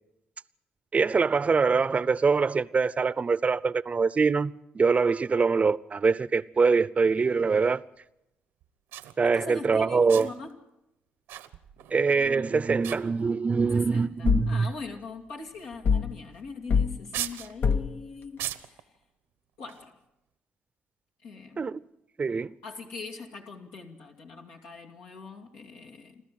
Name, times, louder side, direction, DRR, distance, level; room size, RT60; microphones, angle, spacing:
voice 1, 0.9-7.8 9.2-10.3 11.9-14.7 21.6-21.8 22.2-22.5, right 5 dB, 35° right, 0.6 m, -24 dB
sound 1, 7.5-7.6 8.6-8.7 8.9-9.2 10.1-10.5 11.3-12.0 12.2-12.5 12.8-13.5 14.3-14.4 15.6-15.8 16.2-16.3 17.1-17.5 18.4-18.8 19.6-19.9, right 12 dB, 85° right, 1.0 m, -38 dB
voice 2, 9.2-10.6 13.7-18.9 19.6-20.0 21.2-21.7 22.6-26.2, left 4 dB, 85° left, 2.5 m, -42 dB
sound 2, 14.3-14.6 15.8-16.2 16.7-17.0 17.6-18.0, left 6 dB, 60° left, 0.8 m, -24 dB
28.5 x 13.0 x 7.7 m
supercardioid pair, 60°, 4 cm